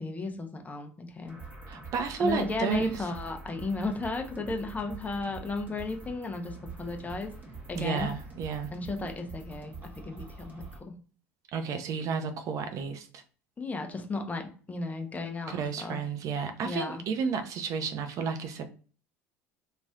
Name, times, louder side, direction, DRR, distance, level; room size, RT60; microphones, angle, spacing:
voice 1, 0.0-1.4 2.2-7.3 7.7-8.2 8.7-10.8 13.6-16.0 16.6-17.0, left 3 dB, 20° left, 0.8 m, -34 dB
sound 1, 1.3-10.8, right 3 dB, 25° right, 1.3 m, -45 dB
voice 2, 1.7-3.0 7.8-8.7 11.5-13.2 15.5-18.7, right 5 dB, 50° right, 0.5 m, -32 dB
3.1 x 2.7 x 2.3 m
hypercardioid pair, 70°, 7 cm